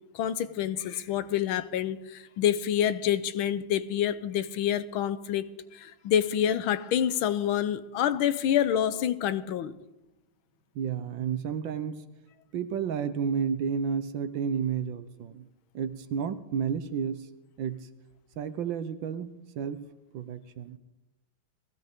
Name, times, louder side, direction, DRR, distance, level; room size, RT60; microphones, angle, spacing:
voice 1, 0.1-9.8, left 10 dB, 80° left, 1.6 m, -27 dB
voice 2, 10.7-12.0 12.5-15.5 15.7-17.2 17.6-17.9 18.4-19.8 20.1-20.8, right 7 dB, 70° right, 1.5 m, -31 dB
21.5 x 16.0 x 3.7 m
omnidirectional pair, 2.3 m